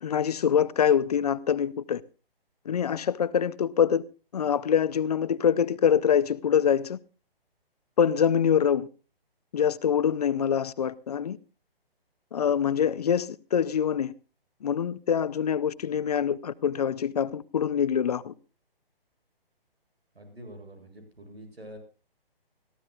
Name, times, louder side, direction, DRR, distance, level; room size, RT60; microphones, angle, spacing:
voice 1, 0.0-2.0 2.7-4.0 4.3-7.0 8.0-8.9 9.5-11.4 12.3-14.1 14.6-18.3, left 8 dB, 40° left, 0.6 m, -25 dB
voice 2, 20.1-21.8, equal, 85° right, 8.0 m, -46 dB
23.5 x 14.5 x 2.4 m
figure-of-eight pair, 145°, 30 cm